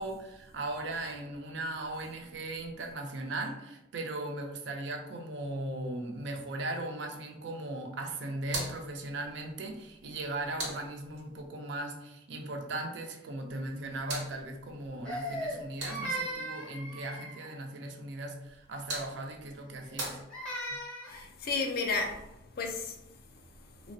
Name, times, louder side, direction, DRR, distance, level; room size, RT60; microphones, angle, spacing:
voice 1, 0.0-20.2, right 2 dB, 65° right, 0.4 m, -38 dB
sound 1, 8.4-11.5 13.5-16.4 18.4-20.9, right 2 dB, 85° right, 0.9 m, -43 dB
Crying sobbing, 15.1-17.6 19.8-21.2, right 1 dB, 5° left, 0.6 m, -38 dB
voice 2, 21.1-23.9, left 4 dB, 50° left, 0.4 m, -35 dB
3.2 x 2.0 x 2.6 m
head